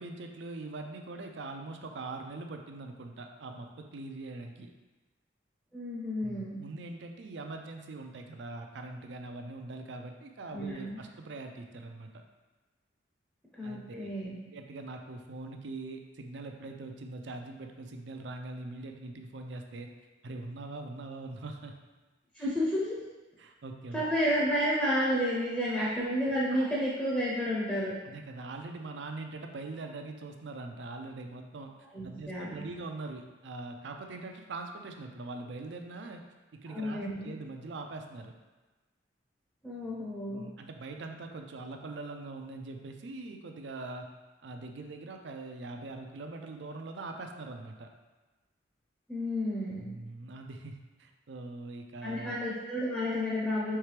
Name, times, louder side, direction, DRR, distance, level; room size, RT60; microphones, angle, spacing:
voice 1, 0.0-4.7 6.2-12.1 13.6-14.1 14.5-19.9 20.2-21.8 22.4-22.5 23.4-24.0 25.7-25.9 26.5-26.7 28.0-31.7 32.0-36.2 36.5-38.3 40.3-44.1 44.4-47.9 49.8-52.4, right 2 dB, 70° right, 4 dB, 0.5 m, -42 dB
voice 2, 5.7-6.6 10.5-11.0 13.6-14.4 22.3-23.0 23.9-27.9 31.9-32.7 36.7-37.3 39.6-40.4 49.1-49.9 52.0-53.8, equal, 5° left, -7 dB, 0.6 m, -31 dB
4.6 x 3.3 x 3.2 m, 1.2 s
head